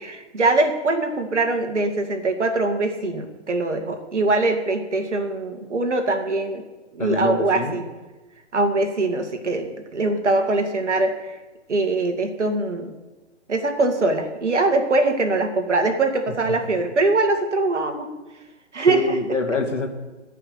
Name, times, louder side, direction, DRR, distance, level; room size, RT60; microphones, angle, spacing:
voice 1, 0.0-6.6 6.9-7.8 8.5-11.4 11.7-12.9 13.5-18.1 18.7-19.2, right 2 dB, 70° right, 5 dB, 2.2 m, -22 dB
voice 2, 7.0-7.8 18.9-19.9, left 3 dB, 80° left, 4 dB, 2.2 m, -25 dB
14.0 x 5.8 x 9.4 m, 1.2 s
figure-of-eight pair, 130°, 36 cm